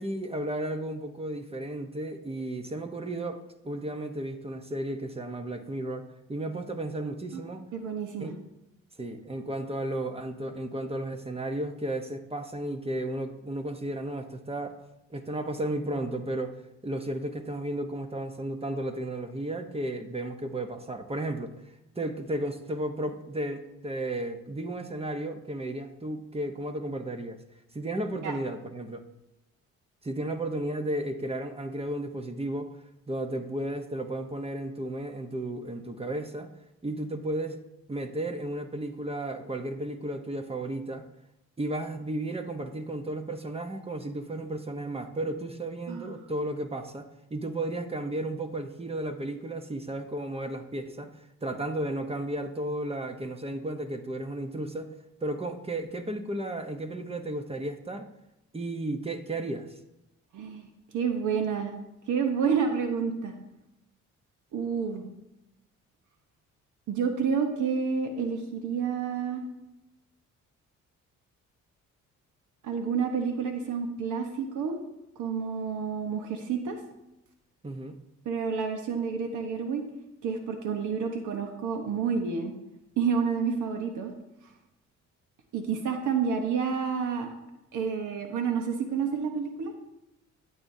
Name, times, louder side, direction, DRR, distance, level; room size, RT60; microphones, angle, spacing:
voice 1, 0.0-7.6 8.2-8.3 9.0-14.8 15.1-16.6 16.8-21.5 22.0-27.4 27.7-29.0 30.0-32.7 33.1-36.5 36.8-37.6 37.9-41.0 41.6-51.1 51.4-54.9 55.2-58.1 58.5-59.7 77.6-78.0, right 1 dB, 20° right, 7 dB, 0.9 m, -33 dB
voice 2, 7.7-8.3 28.2-28.3 45.9-46.2 60.3-60.7 60.9-61.7 62.1-63.3 64.5-65.0 66.9-69.4 72.6-74.8 75.2-76.8 78.2-79.8 80.2-82.5 83.0-84.1 85.5-87.3 87.7-89.7, right 6 dB, 80° right, 5 dB, 1.1 m, -29 dB
12.5 x 8.5 x 2.7 m, 0.91 s
cardioid pair, 90°, 30 cm